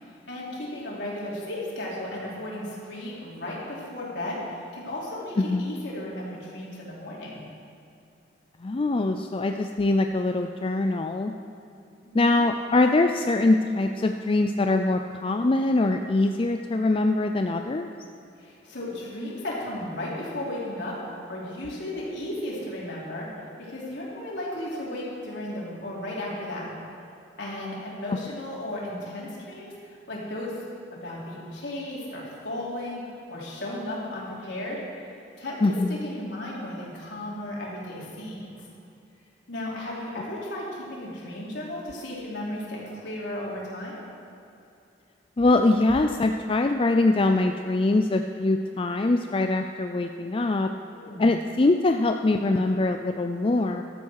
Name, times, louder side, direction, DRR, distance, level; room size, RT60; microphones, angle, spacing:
voice 1, 0.0-7.4 12.0-12.3 18.4-21.0 21.3-23.3 23.6-26.7 27.4-30.5 30.9-33.0 33.3-34.8 35.4-35.6 35.9-38.6 39.5-44.0 50.9-51.3, left 1 dB, 70° left, -6 dB, 3.9 m, -35 dB
voice 2, 5.4-5.7 8.6-11.3 12.1-17.9 28.1-28.2 35.6-36.0 45.4-50.7 51.2-53.8, left 2 dB, 30° left, 5 dB, 0.4 m, -23 dB
14.0 x 12.5 x 4.8 m, 2.6 s
head